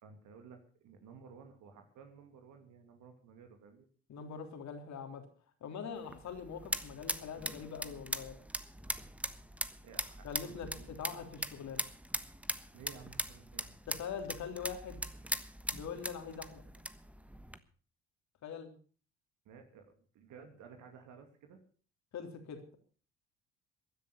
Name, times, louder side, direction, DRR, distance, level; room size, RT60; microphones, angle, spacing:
voice 1, 0.0-3.9 9.8-11.0 12.7-13.8 19.4-21.6, right 6 dB, 70° right, 5 dB, 2.6 m, -55 dB
voice 2, 4.1-5.2 5.6-8.4 10.2-11.8 13.9-15.0 15.7-16.6 18.4-18.7 22.1-22.8, left 6 dB, 60° left, 6 dB, 3.5 m, -43 dB
sound 1, 5.9-17.6, right 1 dB, 5° right, 1.3 m, -41 dB
15.5 x 10.5 x 6.8 m, 0.42 s
hypercardioid pair, 60°, 31 cm